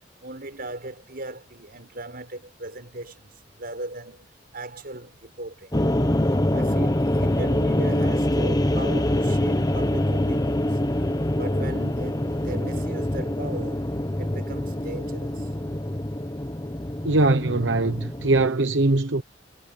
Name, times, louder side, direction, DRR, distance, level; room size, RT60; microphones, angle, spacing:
voice 1, 0.2-3.3 3.6-5.9 6.5-10.8 11.3-13.9 14.2-15.5, right 2 dB, 55° right, 6.4 m, -38 dB
sound 1, 5.7-18.5, left 1 dB, 20° left, 1.1 m, -25 dB
voice 2, 17.0-19.2, right 2 dB, 80° right, 1.0 m, -21 dB
head